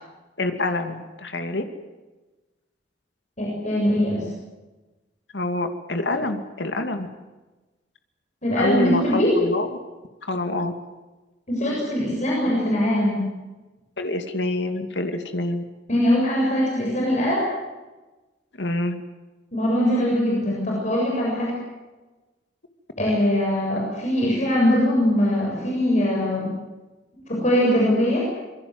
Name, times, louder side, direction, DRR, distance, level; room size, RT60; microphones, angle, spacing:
voice 1, 0.4-1.6 5.3-7.1 8.6-9.7 10.2-10.7 14.0-15.6 18.6-19.0, left 2 dB, 80° left, 6 dB, 2.5 m, -26 dB
voice 2, 3.4-4.3 8.4-9.3 11.5-13.2 15.9-17.5 19.5-21.6 23.0-26.5 27.3-28.2, equal, 40° left, -3 dB, 7.5 m, -21 dB
26.5 x 23.0 x 8.0 m, 1.2 s
head